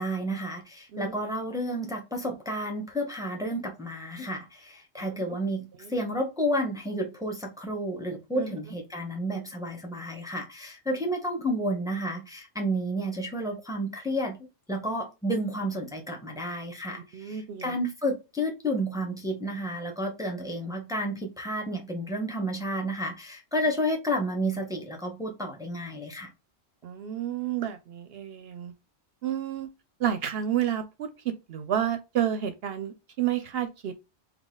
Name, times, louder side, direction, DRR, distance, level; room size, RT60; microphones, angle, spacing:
voice 1, 0.0-14.4 14.7-26.3, equal, 5° right, 0.9 m, -31 dB
voice 2, 17.1-17.7 26.8-28.7 29.2-29.7 30.0-34.0, right 10 dB, 70° right, 0.7 m, -30 dB
4.0 x 2.8 x 3.7 m
omnidirectional pair, 1.1 m